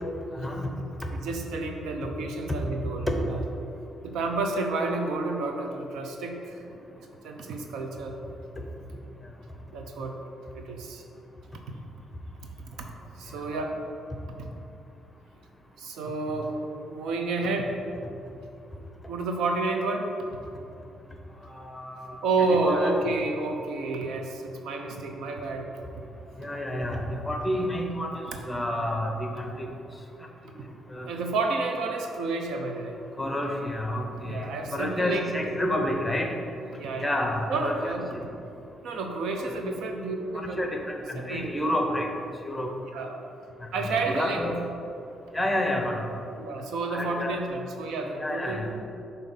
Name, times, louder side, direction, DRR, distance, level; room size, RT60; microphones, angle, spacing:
voice 1, 0.3-0.7 3.1-3.2 21.5-22.1 22.6-22.9 26.4-29.7 30.9-31.1 33.2-34.5 34.7-36.3 37.0-37.7 38.1-38.2 39.4-39.6 40.3-42.1 42.4-42.7 43.8-44.6 45.3-46.0 46.9-47.4 48.2-48.7, left 1 dB, 10° left, 2 dB, 0.8 m, -29 dB
voice 2, 1.1-3.4 4.0-6.6 7.2-8.2 9.7-10.1 10.5-11.0 13.2-13.8 15.8-16.5 16.9-17.7 19.1-20.1 22.2-25.7 31.1-33.0 34.2-35.3 36.7-37.2 37.5-38.2 38.8-40.6 41.2-41.5 42.9-43.2 43.7-44.5 46.4-48.7, right 3 dB, 80° right, 3 dB, 0.7 m, -30 dB
7.3 x 2.8 x 5.5 m, 2.7 s
cardioid pair, 90°, 0 cm